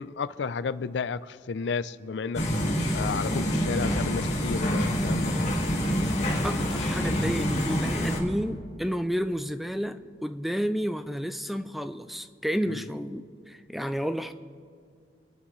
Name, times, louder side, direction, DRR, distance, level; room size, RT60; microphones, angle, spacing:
voice 1, 0.0-2.5 2.9-5.5 12.7-12.8, left 5 dB, 80° left, 0.4 m, -32 dB
sound 1, 2.3-8.2, equal, 40° left, 1.9 m, -27 dB
voice 2, 6.4-14.3, equal, ahead, 0.4 m, -31 dB
25.5 x 11.5 x 3.1 m
head